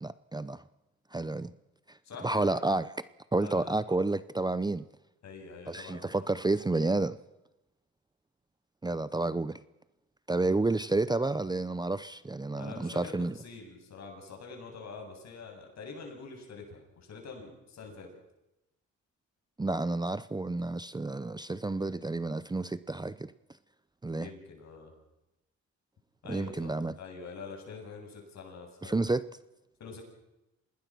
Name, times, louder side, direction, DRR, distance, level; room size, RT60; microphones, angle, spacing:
voice 1, 0.0-0.6 1.1-1.5 2.2-2.9 3.3-4.8 5.7-7.2 8.8-9.6 10.3-13.3 19.6-23.3 24.0-24.3 26.3-26.9 28.8-29.2, right 2 dB, 15° right, 0.7 m, -30 dB
voice 2, 2.0-2.5 3.4-3.8 5.2-6.2 12.6-18.1 24.2-24.9 26.2-29.0 29.8-30.0, left 4 dB, 60° left, 7.9 m, -45 dB
26.5 x 20.0 x 6.2 m
cardioid pair, 90°, 30 cm